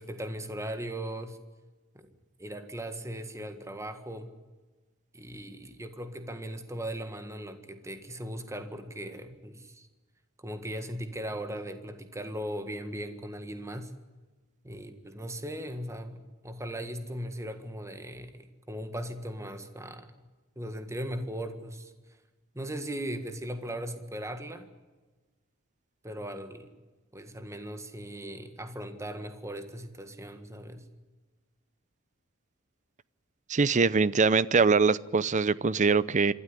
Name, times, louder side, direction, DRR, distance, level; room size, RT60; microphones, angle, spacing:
voice 1, 0.0-1.4 1.9-2.1 2.4-4.3 5.1-9.9 10.4-13.9 14.6-20.3 20.6-21.9 22.5-24.7 26.0-26.7 27.1-30.9, right 1 dB, 15° right, 1.7 m, -38 dB
voice 2, 33.5-36.3, right 4 dB, 35° right, 0.6 m, -23 dB
26.0 x 12.5 x 9.8 m
head